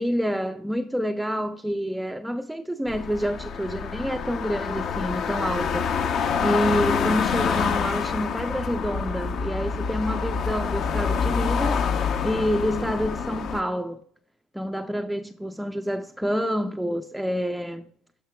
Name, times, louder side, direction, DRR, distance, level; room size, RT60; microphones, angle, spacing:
voice 1, 0.0-6.1 6.4-14.0 14.5-17.9, equal, ahead, 0.3 m, -28 dB
sound 1, 2.9-13.6, left 6 dB, 55° left, 0.6 m, -27 dB
16.5 x 5.8 x 2.2 m
supercardioid pair, 100°, 0 cm